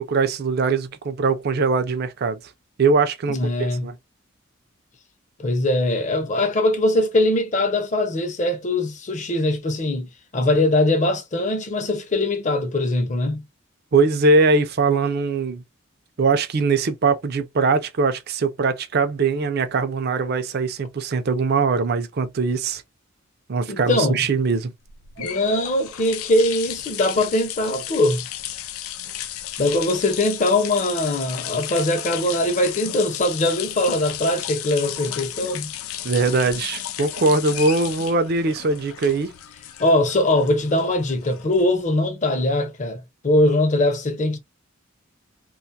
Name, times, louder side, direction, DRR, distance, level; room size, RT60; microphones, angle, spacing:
voice 1, 0.0-2.4 2.8-3.9 13.9-15.6 16.2-22.8 23.5-24.7 36.0-39.3, right 4 dB, 50° right, 0.4 m, -21 dB
voice 2, 3.3-3.9 5.4-13.4 23.7-24.2 25.2-28.2 29.6-35.7 39.8-44.4, left 1 dB, 35° left, 0.6 m, -21 dB
sound 1, 24.9-41.9, left 12 dB, 85° left, 0.4 m, -34 dB
Subway metro underground, 25.2-27.3 27.6-27.7 28.0-28.2 28.5-28.9 29.2-30.2, right 4 dB, 85° right, 0.7 m, -41 dB
2.5 x 2.3 x 2.6 m
head